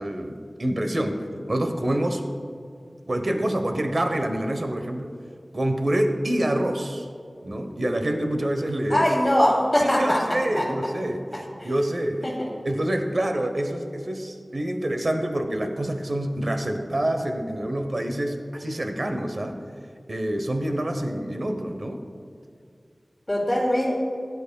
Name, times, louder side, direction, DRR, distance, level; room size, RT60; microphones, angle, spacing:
voice 1, 0.0-2.2 3.1-5.1 5.5-7.1 7.4-9.1 9.8-12.3 12.6-19.6 20.1-22.0, right 1 dB, 55° right, 5 dB, 0.9 m, -27 dB
voice 2, 8.9-10.2 10.6-10.7 11.6-11.7 12.2-12.5 23.3-23.9, equal, 20° left, -4 dB, 2.7 m, -21 dB
16.5 x 11.0 x 2.3 m, 2.3 s
wide cardioid pair, 65°, 0 cm